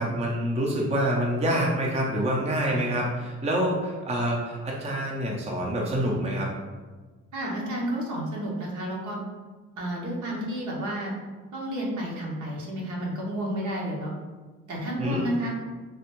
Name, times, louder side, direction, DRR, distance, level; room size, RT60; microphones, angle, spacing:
voice 1, 0.0-6.5 15.0-15.2, equal, 20° right, -2 dB, 0.6 m, -26 dB
voice 2, 7.3-9.2 9.8-11.1 11.5-14.1 14.7-15.5, equal, 75° right, -3 dB, 1.0 m, -31 dB
3.3 x 2.4 x 3.0 m, 1.4 s
cardioid pair, 90°, 30 cm